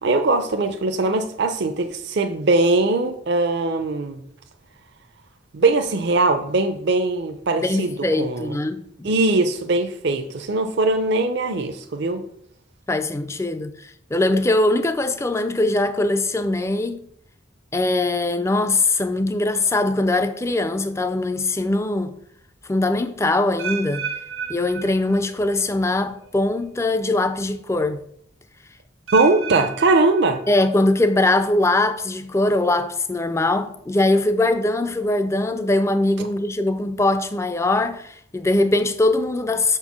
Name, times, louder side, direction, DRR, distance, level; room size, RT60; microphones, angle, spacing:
voice 1, 0.0-4.2 5.5-8.6 9.0-12.2 29.1-30.4 36.2-36.3, right 2 dB, 55° right, 0.5 m, -21 dB
voice 2, 7.6-9.1 12.9-17.1 17.7-22.2 22.7-24.1 24.5-28.0 30.5-39.8, left 2 dB, 15° left, 0.4 m, -21 dB
sound 1, 23.6-25.6 25.9-26.3 27.0-27.1 29.1-31.0 31.3-31.8 32.4-32.5, right 6 dB, 80° right, 1.1 m, -32 dB
6.1 x 4.5 x 5.9 m
head